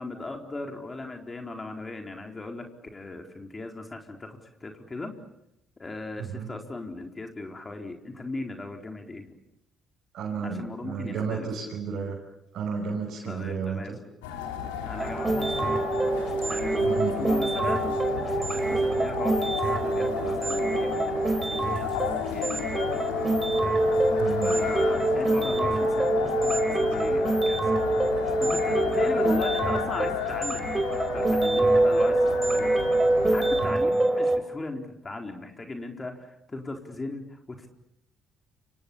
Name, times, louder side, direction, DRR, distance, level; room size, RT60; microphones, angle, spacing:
voice 1, 0.0-5.1 5.8-9.4 10.4-11.5 13.3-14.0 14.8-15.8 16.5-22.9 24.4-27.8 28.2-32.7 33.3-37.7, left 2 dB, 30° left, 3 dB, 4.3 m, -38 dB
voice 2, 6.2-6.5 10.1-12.2 12.5-14.0 16.8-17.1 24.2-24.6, right 6 dB, 65° right, -2 dB, 6.2 m, -32 dB
sound 1, 14.2-33.7, left 8 dB, 85° left, 3.5 m, -33 dB
sound 2, 15.0-34.4, right 2 dB, 25° right, 5.2 m, -25 dB
29.0 x 26.0 x 7.1 m, 0.82 s
hypercardioid pair, 50°, 0 cm